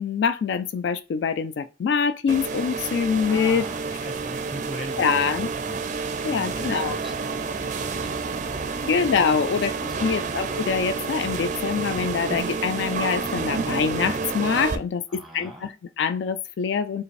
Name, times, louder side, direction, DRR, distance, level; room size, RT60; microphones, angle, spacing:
voice 1, 0.0-3.6 5.0-5.5 6.2-7.0 8.8-9.7 10.0-17.0, left 6 dB, 70° left, 0.3 m, -24 dB
sound 1, 2.3-14.8, right 4 dB, 40° right, 0.4 m, -29 dB
voice 2, 3.3-9.0 9.4-9.5 9.9-10.5 15.1-15.8, equal, ahead, 1.0 m, -41 dB
5.1 x 2.5 x 3.1 m
head